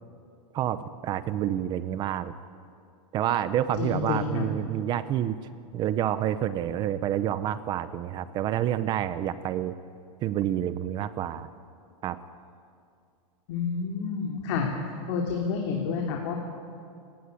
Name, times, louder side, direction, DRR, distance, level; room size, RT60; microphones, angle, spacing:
voice 1, 0.5-2.3 3.1-5.4 5.7-9.7 10.2-11.5 12.0-12.2, right 11 dB, 25° right, 13 dB, 0.8 m, -28 dB
voice 2, 3.8-4.4 13.5-14.7 15.1-16.4, left 5 dB, 45° left, 0 dB, 3.3 m, -29 dB
29.5 x 18.5 x 9.7 m, 2.4 s
supercardioid pair, 165°, 19 cm